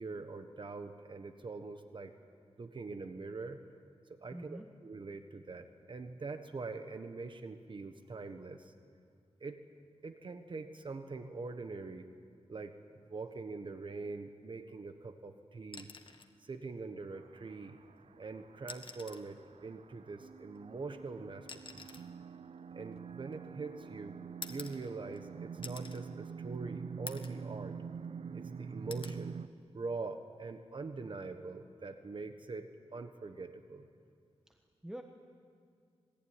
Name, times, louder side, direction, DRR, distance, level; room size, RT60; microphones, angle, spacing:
voice 1, 0.0-2.1 2.6-3.6 4.1-8.7 9.4-9.6 10.0-12.1 12.5-12.7 13.1-15.9 16.4-17.8 18.2-21.9 22.7-24.1 24.5-27.8 28.3-29.4 29.7-33.9, right 3 dB, 45° right, 8 dB, 1.3 m, -43 dB
voice 2, 4.3-4.7 34.5-35.0, right 1 dB, 5° right, 4 dB, 1.3 m, -47 dB
sound 1, 15.6-16.4 17.8-17.9 18.6-19.4 20.5-23.6 24.4-25.3 25.6-26.0 26.5-26.6 27.1-27.5 27.9-28.5 28.9-29.2 30.7-30.9, left 4 dB, 50° left, 1.7 m, -49 dB
sound 2, 17.1-29.5, right 6 dB, 60° right, 0.6 m, -46 dB
27.0 x 20.5 x 9.8 m, 2.2 s
wide cardioid pair, 115°, 11 cm